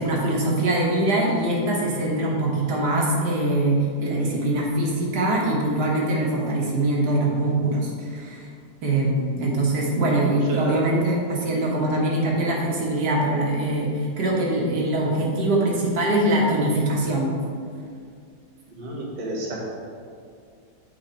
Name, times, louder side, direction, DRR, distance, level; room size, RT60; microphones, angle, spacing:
voice 1, 0.0-8.5 8.8-17.3, right 1 dB, 70° right, -3 dB, 1.8 m, -23 dB
voice 2, 10.5-10.8 18.7-19.5, right 2 dB, 30° right, -4 dB, 1.2 m, -31 dB
8.1 x 4.8 x 4.4 m, 2.2 s
omnidirectional pair, 1.8 m